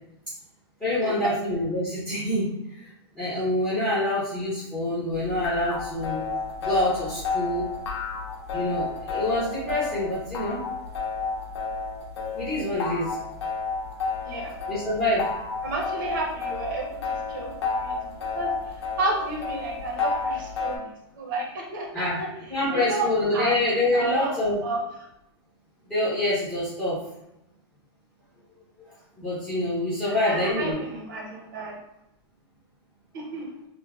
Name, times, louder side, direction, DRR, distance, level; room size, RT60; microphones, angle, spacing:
voice 1, 0.8-2.5 2.8-6.2 6.6-7.7 8.5-10.6 12.4-13.2 14.7-15.3 21.9-22.2 22.5-24.6 25.9-27.0 29.2-30.8, left 1 dB, 5° left, -11 dB, 0.5 m, -26 dB
sound 1, 5.1-20.8, left 4 dB, 75° left, 0.8 m, -31 dB
voice 2, 14.2-14.6 15.6-17.0 17.3-18.5 19.0-22.3 22.7-23.5 23.9-24.8 30.0-31.8 33.1-33.5, right 2 dB, 50° right, 0 dB, 0.7 m, -31 dB
3.3 x 2.1 x 2.2 m, 0.83 s
supercardioid pair, 180°, 14 cm